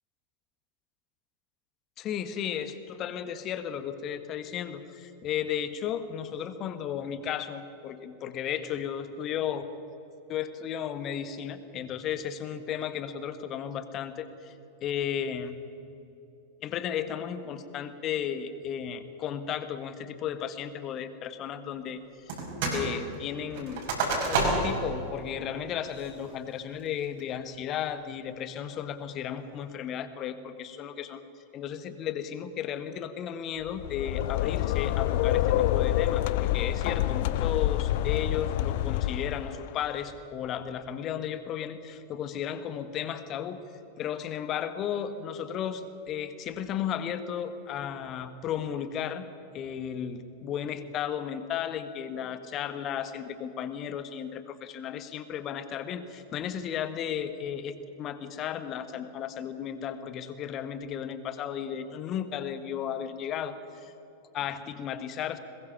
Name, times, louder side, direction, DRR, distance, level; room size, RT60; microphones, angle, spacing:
voice 1, 2.0-9.7 10.3-14.5 14.8-15.6 16.6-22.4 22.7-23.8 24.3-31.2 31.5-43.6 44.0-49.3 49.5-63.9 64.3-65.4, left 9 dB, 35° left, 11 dB, 1.4 m, -34 dB
sound 1, 22.3-22.9 23.1-24.8 25.3-25.4 25.9-26.3 26.8-27.2, right 3 dB, 55° right, 5.6 m, -29 dB
sound 2, 33.7-39.7, left 13 dB, 50° left, 0.6 m, -27 dB
22.0 x 20.5 x 5.9 m, 2.9 s
figure-of-eight pair, 90°, 0 cm